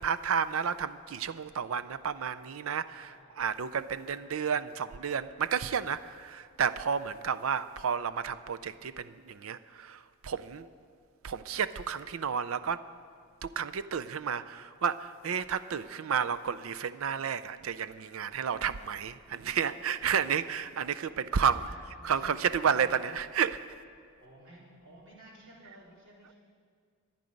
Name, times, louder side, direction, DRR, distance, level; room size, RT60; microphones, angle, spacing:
voice 1, 0.0-10.7 11.2-12.8 13.4-21.7 22.0-23.6, right 7 dB, 75° right, 13 dB, 0.5 m, -31 dB
voice 2, 2.9-3.3 4.2-4.6 21.4-23.1 24.2-26.3, right 1 dB, 60° right, -5 dB, 4.1 m, -54 dB
23.0 x 9.1 x 5.2 m, 2.1 s
head